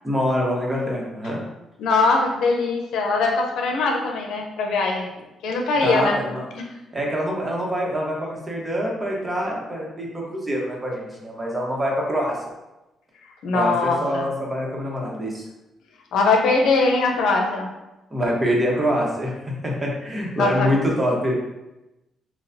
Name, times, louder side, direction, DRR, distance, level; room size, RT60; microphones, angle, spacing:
voice 1, 0.0-1.4 5.8-6.4 6.9-12.4 13.5-15.4 18.1-21.4, equal, 20° right, -2 dB, 1.1 m, -25 dB
voice 2, 1.8-5.1 5.4-6.2 6.5-6.6 13.4-14.3 16.1-17.7 20.4-20.7, left 3 dB, 80° left, 2 dB, 0.7 m, -21 dB
6.4 x 2.3 x 2.7 m, 0.98 s
cardioid pair, 90°, 0 cm